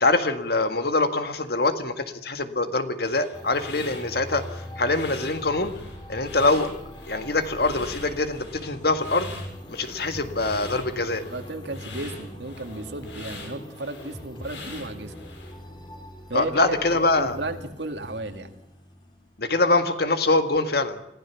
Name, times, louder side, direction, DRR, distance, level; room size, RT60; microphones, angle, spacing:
voice 1, 0.0-4.4 4.8-5.7 6.1-6.7 7.1-9.3 9.7-11.2 16.3-17.4 19.4-21.0, left 2 dB, 55° left, 8 dB, 1.9 m, -24 dB
sound 1, 3.0-15.5, left 3 dB, 75° left, 6.4 m, -43 dB
sound 2, 3.3-19.6, equal, 25° left, 2.7 m, -42 dB
voice 2, 11.2-15.1 16.3-16.9 17.1-18.5, right 2 dB, 65° right, 6 dB, 2.3 m, -34 dB
26.0 x 16.0 x 7.2 m, 0.86 s
head